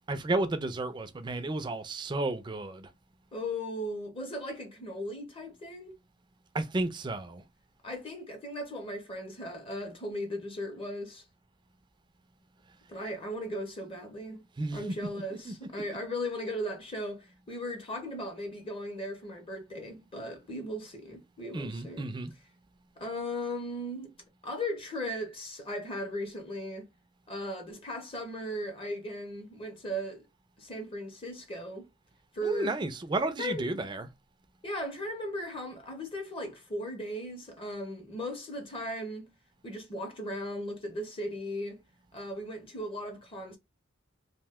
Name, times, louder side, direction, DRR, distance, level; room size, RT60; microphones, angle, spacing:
voice 1, 0.1-2.9 6.5-7.4 13.0-13.1 14.6-14.9 15.3-15.8 21.5-22.3 32.4-34.1, right 2 dB, 20° right, 0.3 m, -33 dB
voice 2, 3.3-5.9 7.8-11.2 12.9-14.4 14.7-22.1 23.0-24.1 24.4-26.9 27.3-30.2 30.6-31.9 32.3-32.8 33.4-33.7 34.6-39.3 39.6-41.8 42.1-43.6, equal, 25° left, 0.6 m, -37 dB
2.6 x 2.1 x 3.5 m
head